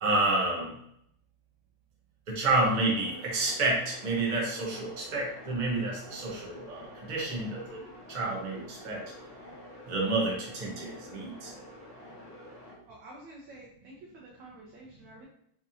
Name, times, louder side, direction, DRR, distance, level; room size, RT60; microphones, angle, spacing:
voice 1, 0.0-0.7 2.3-7.8 8.1-9.0 9.9-11.5, right 2 dB, 35° right, -3 dB, 0.7 m, -29 dB
sound 1, 2.6-12.7, equal, 30° left, 1.7 m, -48 dB
voice 2, 12.9-15.2, right 2 dB, 70° right, -4 dB, 1.4 m, -49 dB
4.2 x 2.9 x 2.7 m, 0.70 s
omnidirectional pair, 2.3 m